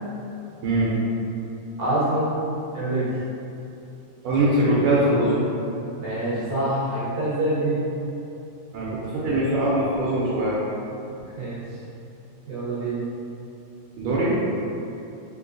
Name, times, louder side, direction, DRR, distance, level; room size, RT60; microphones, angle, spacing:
voice 1, 1.8-2.3 2.7-3.2 6.0-7.8 11.4-11.6 12.5-13.0, right 1 dB, 65° right, -9 dB, 0.9 m, -25 dB
voice 2, 4.2-5.4 8.7-10.6 14.0-14.4, right 1 dB, 90° right, -8 dB, 1.5 m, -22 dB
3.6 x 2.6 x 2.5 m, 2.7 s
omnidirectional pair, 2.3 m